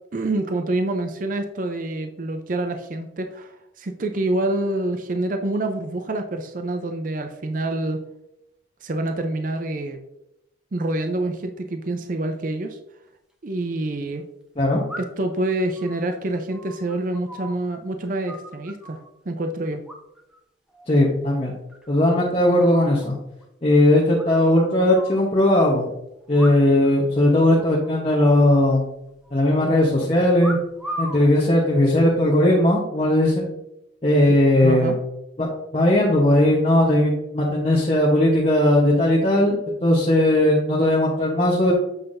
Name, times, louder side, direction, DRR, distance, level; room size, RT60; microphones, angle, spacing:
voice 1, 0.1-8.0 8.8-10.0 10.7-12.8 13.4-14.2 15.0-19.0 19.3-19.8 34.6-35.0, right 2 dB, 45° right, 6 dB, 0.5 m, -26 dB
sound 1, 13.1-13.2 14.9-15.3 15.7-17.8 18.0-19.1 19.9-20.4 20.7-21.1 21.4-22.0 22.3-22.4 22.6-22.7 23.0-23.1 23.4-23.5 24.2-25.2 26.3-26.9 27.2-27.3 27.6-27.9 28.4-29.3 30.4-31.3 32.0-32.4, equal, 5° right, 0.8 m, -37 dB
voice 2, 20.9-21.5 21.9-23.2 23.6-25.9 26.3-28.9 29.3-30.6 31.0-33.5 34.0-35.0 35.4-41.7, left 1 dB, 35° left, -4 dB, 0.9 m, -18 dB
7.9 x 5.7 x 2.6 m, 0.85 s
head